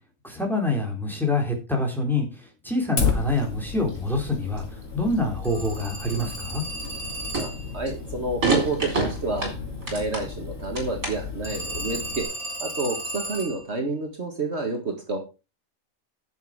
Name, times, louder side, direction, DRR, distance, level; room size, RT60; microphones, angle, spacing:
voice 1, 0.2-6.6, left 2 dB, ahead, 1 dB, 3.7 m, -26 dB
sound 1, 2.8-3.4 3.9-5.5 5.8-6.3 6.8-7.1 7.3-7.9 8.4-10.3 10.6-11.4, right 3 dB, 70° right, 4.4 m, -28 dB
Fire, 3.0-12.2, left 5 dB, 65° left, 2.7 m, -33 dB
Telephone, 5.4-7.8 11.4-13.6, right 1 dB, 30° left, 4.1 m, -35 dB
voice 2, 7.4-9.5 9.9-12.3 12.6-15.2, right 3 dB, 50° right, 3 dB, 2.0 m, -29 dB
10.5 x 7.7 x 4.8 m, 0.29 s
omnidirectional pair, 1.5 m